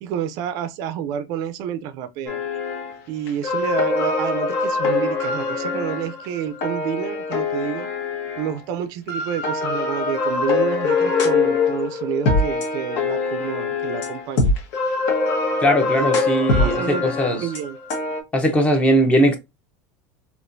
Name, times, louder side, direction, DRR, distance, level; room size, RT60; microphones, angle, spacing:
voice 1, 0.0-2.4 3.1-7.9 8.4-14.5 16.0-16.1 16.6-17.8, right 9 dB, 50° right, 0.4 m, -29 dB
sound 1, 2.3-3.0 3.3-8.6 9.1-18.2, left 3 dB, 55° left, 1.2 m, -23 dB
voice 2, 15.6-17.4 18.3-19.4, equal, 15° left, 0.8 m, -19 dB
4.1 x 2.8 x 2.6 m
supercardioid pair, 150°, 8 cm